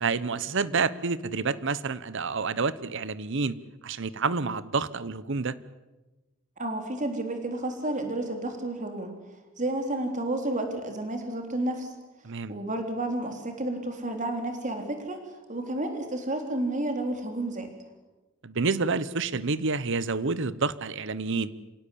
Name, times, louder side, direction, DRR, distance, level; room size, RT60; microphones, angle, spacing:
voice 1, 0.0-3.6 3.8-5.5 12.2-12.5 18.4-21.5, right 4 dB, 65° right, 17 dB, 0.9 m, -28 dB
voice 2, 6.6-9.2 9.6-11.9 12.5-17.7, right 1 dB, 40° right, 5 dB, 3.6 m, -31 dB
27.5 x 17.0 x 8.5 m, 1.1 s
head